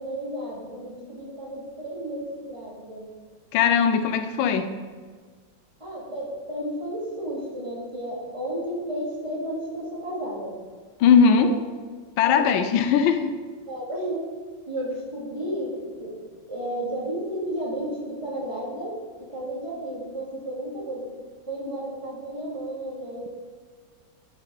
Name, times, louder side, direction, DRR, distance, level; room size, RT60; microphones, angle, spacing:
voice 1, 0.0-3.1 5.8-10.5 11.3-11.5 12.4-12.5 13.7-14.3 14.7-16.2 16.5-21.1 21.5-23.3, right 1 dB, 15° right, -6 dB, 2.4 m, -32 dB
voice 2, 3.5-4.7 11.0-11.5 12.2-13.3, left 6 dB, 85° left, 8 dB, 1.4 m, -19 dB
8.0 x 6.7 x 4.0 m, 1.6 s
omnidirectional pair, 2.1 m